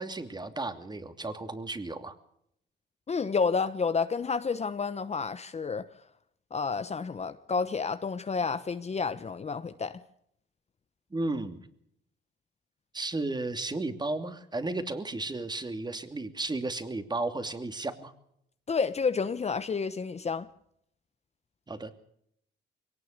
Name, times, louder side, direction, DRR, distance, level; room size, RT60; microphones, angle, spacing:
voice 1, 0.0-2.1 11.1-11.7 12.9-18.1 21.7-21.9, right 2 dB, 20° right, 2.8 m, -34 dB
voice 2, 3.1-5.9 6.5-10.0 18.7-20.5, left 5 dB, 35° left, 1.1 m, -30 dB
23.0 x 18.0 x 6.7 m
cardioid pair, 90°, 20 cm